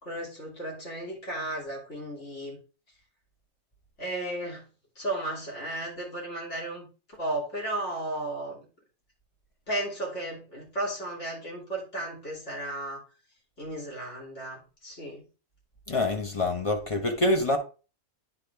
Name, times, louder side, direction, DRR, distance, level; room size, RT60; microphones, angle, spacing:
voice 1, 0.0-2.6 4.0-4.6 4.9-8.6 9.7-13.0 13.6-15.2, right 1 dB, 50° left, 3.1 m, -34 dB
voice 2, 15.9-17.6, left 2 dB, 30° left, 0.8 m, -26 dB
9.7 x 4.2 x 3.4 m
omnidirectional pair, 1.5 m